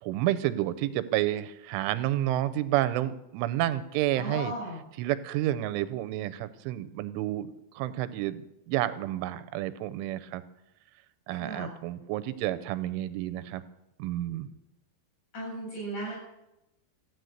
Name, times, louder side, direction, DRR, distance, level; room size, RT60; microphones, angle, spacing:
voice 1, 0.0-4.5 5.0-10.4 11.3-13.6 14.0-14.5, right 14 dB, 85° right, 12 dB, 3.2 m, -30 dB
voice 2, 4.2-4.8 11.4-11.7 15.3-16.2, right 1 dB, 40° left, -4 dB, 9.1 m, -36 dB
15.0 x 9.8 x 7.9 m, 0.88 s
omnidirectional pair, 5.5 m